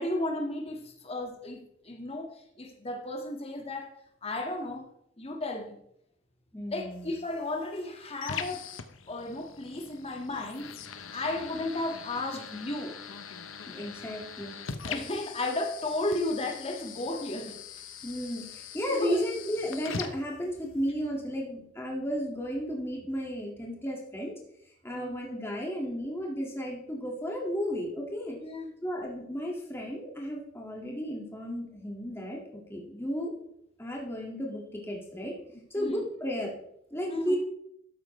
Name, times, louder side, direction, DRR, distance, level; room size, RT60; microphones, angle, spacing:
voice 1, 0.0-3.9 4.2-4.9 5.2-5.8 6.7-8.6 9.1-12.9 14.8-17.6 19.0-19.2 24.9-25.1 28.4-28.7 35.8-36.0 37.1-37.4, left 2 dB, 30° left, 2 dB, 1.7 m, -34 dB
voice 2, 6.5-7.1 13.7-14.5 18.0-24.3 24.8-28.4 28.8-32.4 32.7-33.3 33.8-35.4 35.7-36.5 36.9-37.4, equal, 15° left, -2 dB, 2.0 m, -33 dB
sound 1, 6.9-20.9, left 6 dB, 85° left, 0.9 m, -43 dB
13.0 x 9.1 x 3.2 m, 0.74 s
head